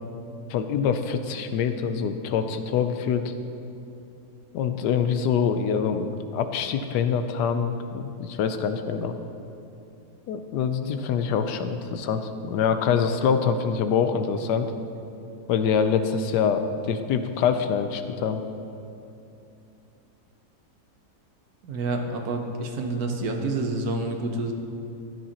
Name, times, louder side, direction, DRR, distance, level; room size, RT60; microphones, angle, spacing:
voice 1, 0.5-3.3 4.5-9.1 10.3-14.7 15.5-18.4, left 7 dB, 85° left, 9 dB, 1.2 m, -25 dB
voice 2, 21.6-24.5, right 2 dB, 65° right, 3 dB, 1.3 m, -28 dB
14.0 x 9.8 x 2.9 m, 2.7 s
omnidirectional pair, 1.8 m